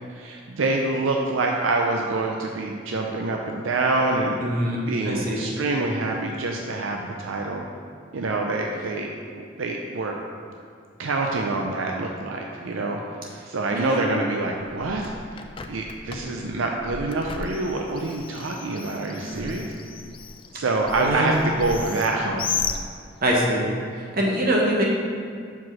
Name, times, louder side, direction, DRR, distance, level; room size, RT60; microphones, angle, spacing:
voice 1, 0.1-4.5 4.9-7.6 8.1-10.2 11.0-13.0 13.5-15.4 15.7-19.7 20.5-22.4, right 2 dB, 80° right, 1 dB, 0.5 m, -26 dB
voice 2, 4.4-4.8 5.0-5.4 13.7-14.0 19.2-19.5 21.0-21.3 23.2-23.6 24.1-24.9, equal, 50° right, -2 dB, 1.3 m, -23 dB
Bird, 14.6-23.4, left 5 dB, 25° left, 0.4 m, -35 dB
6.0 x 4.8 x 6.1 m, 2.2 s
head